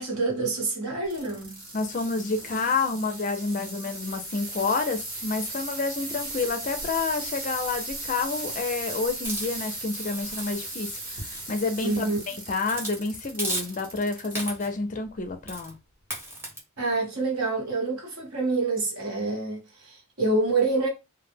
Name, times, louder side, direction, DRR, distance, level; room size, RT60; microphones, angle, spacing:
voice 1, 0.0-1.6 11.8-12.2 16.8-20.9, right 3 dB, 85° right, 1.1 m, -27 dB
sound 1, 1.0-14.5 15.0-15.5 16.2-16.3, right 2 dB, 40° right, 1.0 m, -37 dB
voice 2, 1.7-15.7, left 4 dB, 35° left, 0.4 m, -29 dB
Hiss, 9.2-12.1 12.6-13.0 13.4-14.0 14.3-14.8 15.5-15.7 16.1-16.6, right 1 dB, 10° right, 0.7 m, -36 dB
2.1 x 2.0 x 3.3 m
head